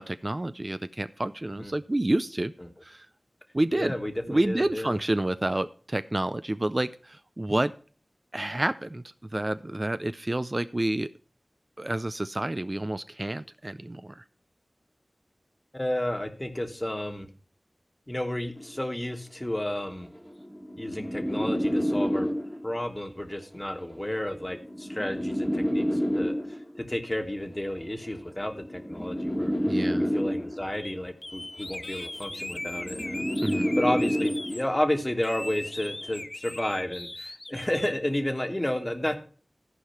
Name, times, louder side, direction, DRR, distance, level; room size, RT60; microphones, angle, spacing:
voice 1, 0.0-2.5 2.8-3.1 3.5-3.9 4.3-7.7 8.3-9.0 9.3-11.1 11.8-14.2 29.7-30.1 33.4-33.7, right 1 dB, 35° right, 12 dB, 0.4 m, -29 dB
voice 2, 3.7-4.9 15.7-17.3 18.1-20.1 20.8-22.3 22.6-26.3 26.8-29.5 30.0-33.3 33.8-39.2, left 1 dB, 25° left, 6 dB, 1.4 m, -31 dB
sound 1, 18.6-18.8 19.7-22.8 23.8-26.8 27.8-30.8 31.8-34.8 35.8-36.2, equal, 5° left, 1.5 m, -29 dB
sound 2, 30.8-31.0 31.2-34.6 35.2-37.9, left 1 dB, 40° left, 0.5 m, -38 dB
13.5 x 4.8 x 5.7 m, 0.41 s
wide cardioid pair, 40°, 0 cm